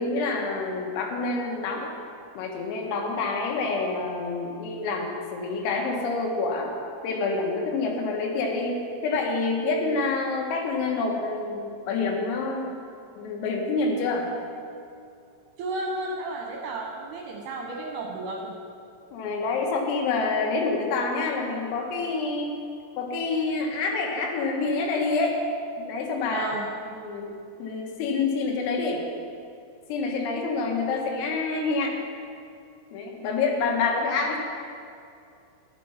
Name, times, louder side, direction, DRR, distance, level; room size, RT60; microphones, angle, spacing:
voice 1, 0.0-1.9 2.4-6.7 7.0-12.7 13.2-14.3 19.1-22.6 23.0-25.4 25.8-26.5 26.9-29.0 29.9-32.0 32.9-34.4, left 3 dB, 85° left, 1 dB, 4.2 m, -27 dB
voice 2, 15.6-18.6 26.3-26.7, right 2 dB, 75° right, 0 dB, 2.6 m, -32 dB
11.5 x 11.0 x 5.7 m, 2.5 s
omnidirectional pair, 5.9 m